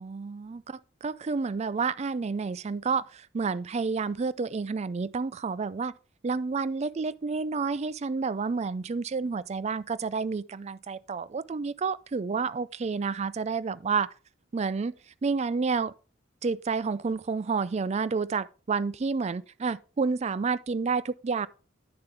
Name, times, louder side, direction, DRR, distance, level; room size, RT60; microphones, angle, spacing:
voice 1, 0.0-5.9 6.2-14.1 14.5-14.9 15.2-15.9 16.4-21.5, right 4 dB, 35° right, 0.4 m, -30 dB
10.5 x 6.8 x 3.4 m
head